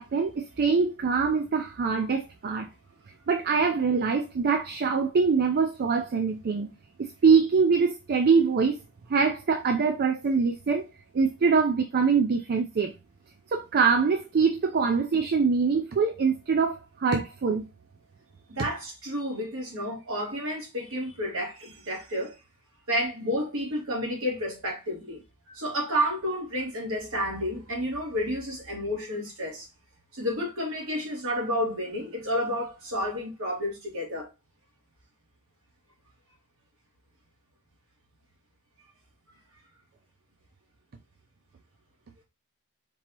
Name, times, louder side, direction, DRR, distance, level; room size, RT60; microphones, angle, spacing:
voice 1, 0.0-2.7 3.3-6.7 7.0-8.8 9.1-10.9 11.1-12.9 13.5-17.7, right 5 dB, 45° right, 0.4 m, -24 dB
voice 2, 18.5-22.4 22.9-25.2 25.5-29.7 30.1-34.3, equal, 65° right, 2.0 m, -30 dB
4.5 x 2.8 x 2.9 m
head